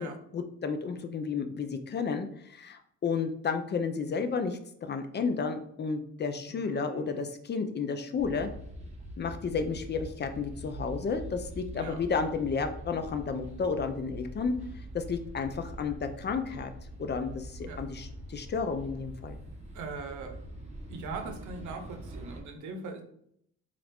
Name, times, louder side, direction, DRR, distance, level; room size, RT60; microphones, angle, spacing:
voice 1, 0.3-4.6 4.9-8.5 9.2-14.5 14.9-16.7 17.0-19.4, left 5 dB, 35° left, 8 dB, 0.4 m, -32 dB
voice 2, 6.5-7.2 11.7-12.0 17.6-17.8 19.7-20.4 20.9-23.0, right 4 dB, 75° right, 6 dB, 0.7 m, -41 dB
sound 1, 8.2-22.4, right 1 dB, 20° right, 1.0 m, -44 dB
4.0 x 2.5 x 3.4 m, 0.70 s
cardioid pair, 90°, 30 cm